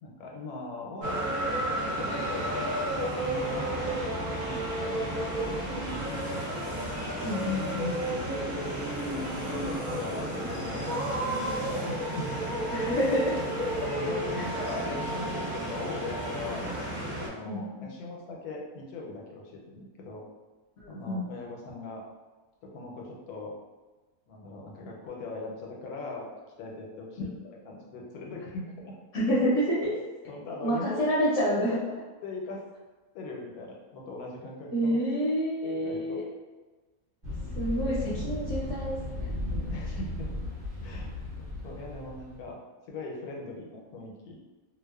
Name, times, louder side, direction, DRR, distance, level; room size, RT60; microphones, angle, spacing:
voice 1, 0.0-1.3 1.9-2.8 3.1-6.4 8.0-8.6 9.3-12.3 13.8-16.6 17.2-20.2 20.9-22.0 22.6-23.5 24.3-26.3 26.6-27.4 27.7-28.9 30.3-31.1 32.2-32.6 33.1-35.0 35.8-36.2 39.7-40.3 40.8-41.1 41.4-42.6 42.9-44.4, left 2 dB, 85° left, -1 dB, 1.1 m, -40 dB
sound 1, 1.0-17.3, right 1 dB, 65° right, 0.5 m, -32 dB
sound 2, 3.2-10.2, left 1 dB, 30° left, 0.5 m, -44 dB
voice 2, 7.2-7.9 12.7-13.9 14.3-14.4 17.4-17.6 20.8-21.2 29.1-29.9 30.6-31.8 34.7-36.2 37.5-39.6, equal, 65° left, -7 dB, 0.9 m, -28 dB
sound 3, 37.2-42.5, left 1 dB, 45° right, 0.9 m, -35 dB
2.8 x 2.0 x 2.2 m, 1.2 s
omnidirectional pair, 1.6 m